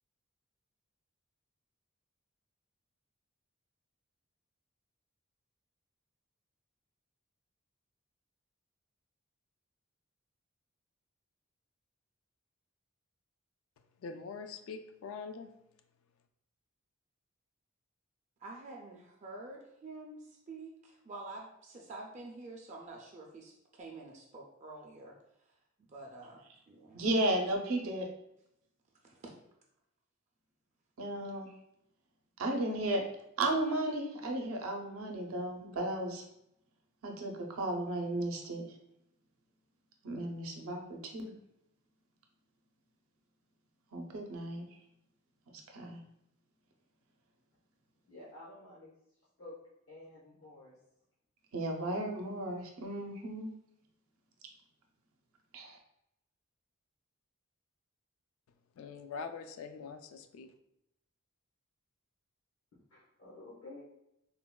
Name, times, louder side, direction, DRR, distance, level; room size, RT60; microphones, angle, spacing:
voice 1, 14.0-15.5 58.8-60.5, left 5 dB, 70° left, 7 dB, 0.3 m, -43 dB
voice 2, 18.4-25.2 25.9-27.0 29.0-29.3, right 2 dB, 35° right, 0 dB, 0.4 m, -48 dB
voice 3, 26.9-28.1 31.0-31.5 32.4-33.1 33.4-36.2 37.0-38.6 40.0-41.3 43.9-44.6 45.5-46.0 51.5-53.5 55.5-55.8, right 1 dB, 85° right, 2 dB, 0.5 m, -34 dB
voice 4, 48.1-48.9 49.4-49.5 49.9-50.8 62.9-63.8, left 2 dB, 85° left, -8 dB, 0.9 m, -51 dB
3.8 x 2.1 x 2.2 m, 0.80 s
head